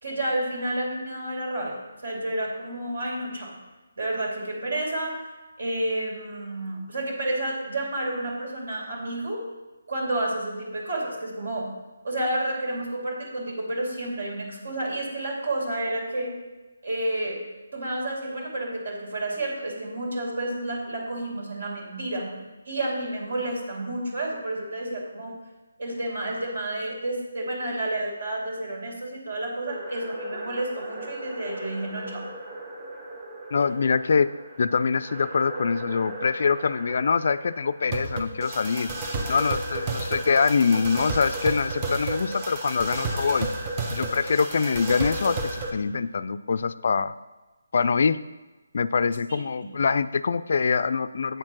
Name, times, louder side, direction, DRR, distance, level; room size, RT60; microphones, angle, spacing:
voice 1, 0.0-3.5 4.0-5.3 5.6-9.4 9.9-11.7 12.0-16.3 16.8-17.4 17.7-22.4 22.7-25.3 25.8-32.2 49.6-49.7, right 1 dB, 70° right, -1 dB, 2.6 m, -30 dB
sound 1, 29.7-45.7, right 2 dB, 25° right, 1.0 m, -33 dB
voice 2, 33.5-34.3 34.6-38.9 39.3-43.5 43.9-47.1 47.7-48.2 48.7-51.4, left 5 dB, 55° left, 14 dB, 0.3 m, -24 dB
8.0 x 4.4 x 6.1 m, 1.1 s
figure-of-eight pair, 155°, 0 cm